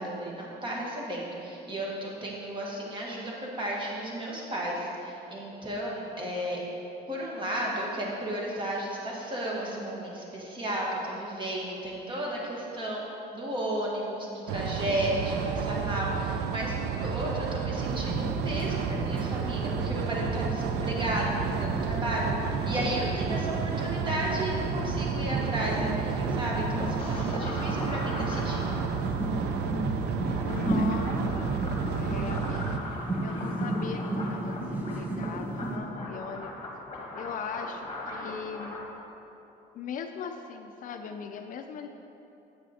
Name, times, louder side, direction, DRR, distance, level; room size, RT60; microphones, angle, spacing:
voice 1, 0.0-6.6 7.1-13.0 13.3-28.7, right 1 dB, 30° right, -3 dB, 1.4 m, -33 dB
sound 1, 14.5-32.8, right 7 dB, 80° right, 0.4 m, -32 dB
sound 2, 17.8-35.8, right 1 dB, 10° right, 0.9 m, -34 dB
sound 3, 27.0-38.8, left 2 dB, 35° left, 1.1 m, -40 dB
voice 2, 30.3-31.6 32.0-32.8 33.2-36.5 37.1-38.8 39.7-41.9, left 6 dB, 50° left, 6 dB, 0.4 m, -39 dB
7.8 x 6.0 x 2.8 m, 2.9 s
cardioid pair, 110°, 17 cm